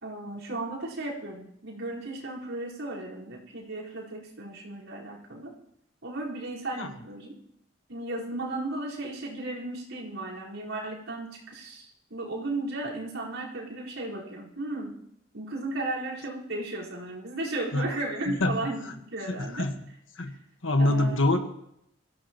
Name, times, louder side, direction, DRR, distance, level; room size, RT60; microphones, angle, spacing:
voice 1, 0.0-5.5 6.0-7.3 7.9-15.0 15.3-19.7 20.8-21.2, right 2 dB, 75° right, -6 dB, 4.6 m, -35 dB
voice 2, 19.4-19.7 20.2-20.3 20.6-21.4, left 2 dB, 70° left, 6 dB, 1.5 m, -24 dB
23.5 x 15.5 x 3.0 m, 0.77 s
head